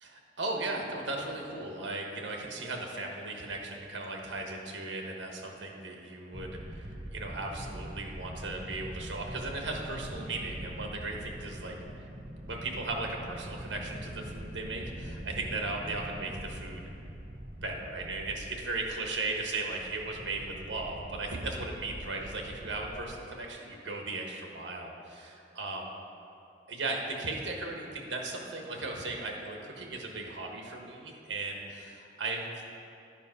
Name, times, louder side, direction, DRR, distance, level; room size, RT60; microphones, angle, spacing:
voice 1, 0.0-12.1 12.4-16.8 17.6-25.9 26.7-32.5, right 2 dB, 70° right, 1 dB, 1.3 m, -37 dB
sound 1, 6.3-23.2, right 1 dB, 30° right, 0.6 m, -43 dB
10.5 x 5.3 x 5.3 m, 2.7 s
head